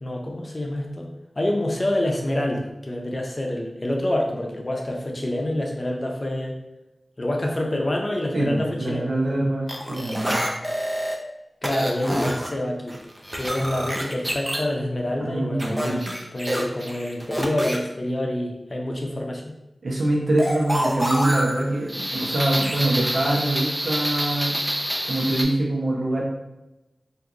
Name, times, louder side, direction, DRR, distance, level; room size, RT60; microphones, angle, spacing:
voice 1, 0.0-6.6 7.2-9.1 11.6-13.0 13.4-19.6, left 1 dB, 40° left, 0 dB, 0.6 m, -27 dB
voice 2, 8.3-10.5 15.2-16.0 19.8-24.6 25.1-26.2, right 1 dB, 75° right, -3 dB, 0.8 m, -24 dB
sound 1, 9.7-11.1 11.6-12.5 12.9-14.6 15.6-17.8 20.4-25.4, equal, 20° right, 0.5 m, -27 dB
2.6 x 2.4 x 3.0 m, 0.96 s
cardioid pair, 40°, 0 cm